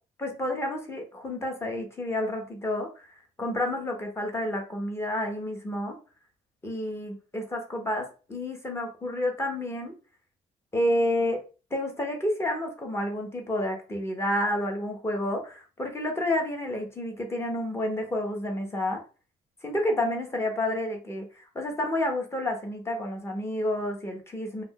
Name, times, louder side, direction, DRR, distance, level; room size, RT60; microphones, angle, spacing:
voice 1, 0.2-6.0 6.6-9.9 10.7-11.4 11.7-19.0 19.6-24.6, left 1 dB, 20° left, 2 dB, 0.8 m, -30 dB
2.4 x 2.2 x 3.6 m, 0.34 s
cardioid pair, 120°, 14 cm